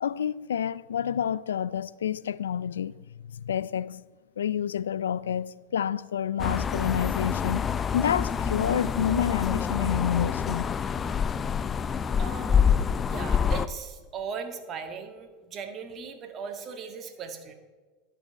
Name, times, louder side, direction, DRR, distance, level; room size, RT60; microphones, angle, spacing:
voice 1, 0.0-3.0 3.3-4.0 4.4-7.7 7.9-10.7, left 9 dB, 90° left, 0.3 m, -28 dB
sound 1, 6.4-13.7, left 7 dB, 30° left, 0.5 m, -27 dB
voice 2, 11.8-12.7 13.0-17.5, right 6 dB, 40° right, 1.6 m, -38 dB
11.0 x 5.5 x 8.7 m
hypercardioid pair, 95°, 0 cm